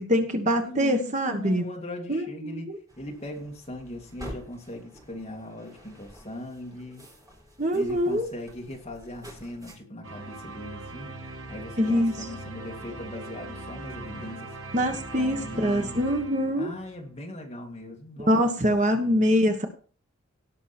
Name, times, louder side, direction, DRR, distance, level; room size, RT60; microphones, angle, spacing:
voice 1, 0.0-1.6 2.1-2.8 7.6-8.3 11.8-12.1 14.7-16.7 18.2-19.7, equal, 35° right, 5 dB, 1.3 m, -24 dB
voice 2, 0.6-7.1 7.7-11.2 11.5-14.6 15.1-16.0 16.6-18.5 18.9-19.3, left 1 dB, 30° left, 1 dB, 2.2 m, -39 dB
sound 1, 2.9-9.8, equal, 15° right, 3.9 m, -47 dB
sound 2, 10.0-17.1, right 2 dB, 75° right, 2.2 m, -40 dB
17.5 x 6.1 x 4.4 m, 0.42 s
head